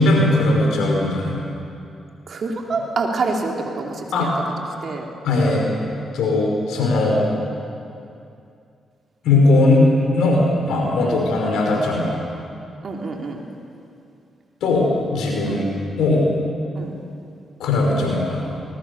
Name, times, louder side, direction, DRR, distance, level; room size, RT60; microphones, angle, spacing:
voice 1, 0.0-1.4 4.1-4.3 5.2-5.6 6.1-7.2 9.2-9.8 10.1-12.2 14.6-15.7 16.0-16.3 17.6-18.5, left 2 dB, 75° left, -1 dB, 5.4 m, -18 dB
voice 2, 2.3-4.3 4.8-5.1 10.7-11.2 12.8-13.4 15.4-15.7 16.7-17.0, right 3 dB, 55° right, 1 dB, 3.3 m, -27 dB
21.5 x 20.5 x 7.1 m, 2.5 s
hypercardioid pair, 45°, 0 cm